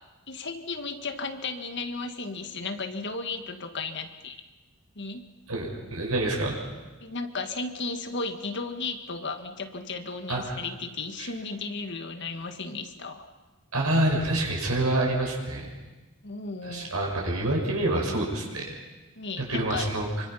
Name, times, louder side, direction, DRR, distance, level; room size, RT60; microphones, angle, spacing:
voice 1, 0.3-4.4 4.9-5.2 7.0-13.2 16.2-16.9 19.1-19.9, left 3 dB, 55° left, 7 dB, 1.7 m, -34 dB
voice 2, 5.5-6.6 10.3-10.6 11.2-11.3 13.7-15.7 16.6-18.7 19.4-20.1, right 1 dB, 90° right, 0 dB, 5.6 m, -27 dB
26.0 x 24.5 x 5.8 m, 1.2 s
head